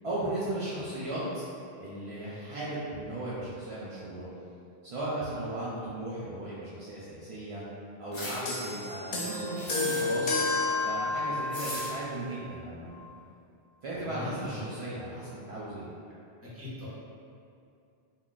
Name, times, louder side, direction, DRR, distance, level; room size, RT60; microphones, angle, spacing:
voice 1, 0.0-1.4 1.8-4.3 4.8-7.6 8.0-10.4 10.8-13.1 13.8-15.9, right 1 dB, 60° right, -9 dB, 0.3 m, -36 dB
sound 1, 8.1-8.4 9.6-10.2 11.5-11.9, left 1 dB, 35° left, 0.5 m, -38 dB
sound 2, 8.5-12.1 13.0-13.1, left 3 dB, 75° left, 0.8 m, -31 dB
voice 2, 14.0-14.6 16.5-16.9, left 2 dB, 15° right, -10 dB, 0.8 m, -40 dB
2.3 x 2.1 x 3.8 m, 2.5 s
omnidirectional pair, 1.1 m